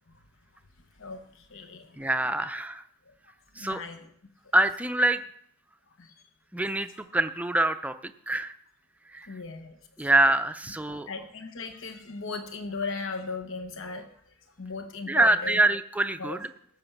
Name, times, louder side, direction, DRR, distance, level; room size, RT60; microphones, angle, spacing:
voice 1, 1.0-2.0 3.1-3.2 3.5-4.1 6.0-6.2 9.3-9.8 10.0-10.1 11.1-15.6 16.2-16.4, left 4 dB, 60° left, 6 dB, 1.1 m, -37 dB
voice 2, 2.0-2.8 3.6-3.8 4.5-5.2 6.5-8.0 8.3-8.5 9.1-9.3 10.0-11.1 15.1-16.5, right 1 dB, 5° right, 9 dB, 0.6 m, -25 dB
17.0 x 6.7 x 7.2 m, 0.65 s
head